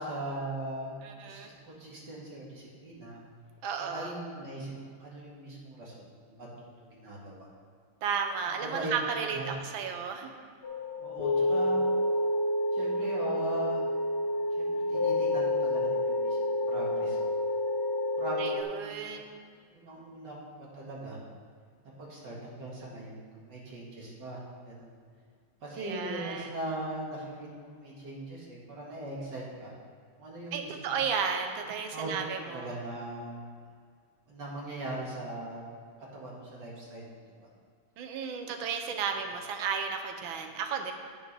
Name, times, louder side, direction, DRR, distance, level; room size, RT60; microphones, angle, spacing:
voice 1, 0.0-1.0 1.2-3.2 3.8-6.5 6.8-7.5 8.5-8.9 9.3-9.5 11.0-11.9 12.7-13.8 14.6-17.4 18.2-19.3 19.7-20.4 20.7-21.2 22.0-25.0 25.6-29.7 30.2-31.1 31.9-32.1 32.4-33.5 34.3-35.6 36.1-37.5, right 1 dB, 55° right, -5 dB, 2.6 m, -40 dB
voice 2, 1.0-1.5 3.6-4.1 8.0-10.3 18.4-19.3 25.8-26.5 30.5-32.7 38.0-40.9, right 6 dB, 75° right, 5 dB, 1.6 m, -33 dB
sound 1, 10.6-18.6, left 1 dB, 75° left, 0.6 m, -29 dB
11.0 x 9.1 x 3.3 m, 2.1 s
omnidirectional pair, 2.3 m